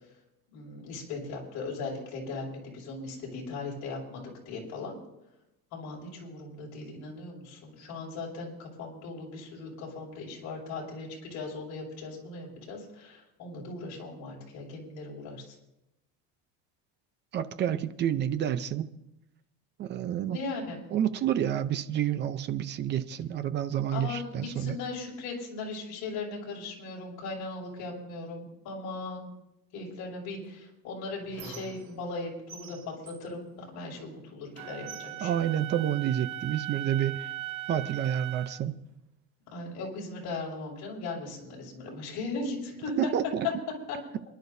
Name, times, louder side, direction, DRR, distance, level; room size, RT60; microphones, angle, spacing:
voice 1, 0.5-4.9 5.7-15.5 20.2-20.8 23.9-29.3 29.7-35.5 39.5-43.1 43.9-44.0, left 3 dB, 50° left, -3 dB, 6.2 m, -38 dB
voice 2, 17.3-18.9 19.8-20.4 20.9-24.8 35.2-37.3 37.7-38.7 43.0-43.5, right 10 dB, 30° right, 12 dB, 0.6 m, -29 dB
Squeak, 30.4-32.2 32.5-34.2 34.5-36.2 37.0-37.1 37.5-38.5, right 6 dB, 85° right, 4.5 m, -50 dB
Wind instrument woodwind instrument, 34.6-38.6, right 14 dB, 55° right, 1.1 m, -39 dB
28.0 x 11.5 x 2.7 m, 0.88 s
cardioid pair, 170°, 36 cm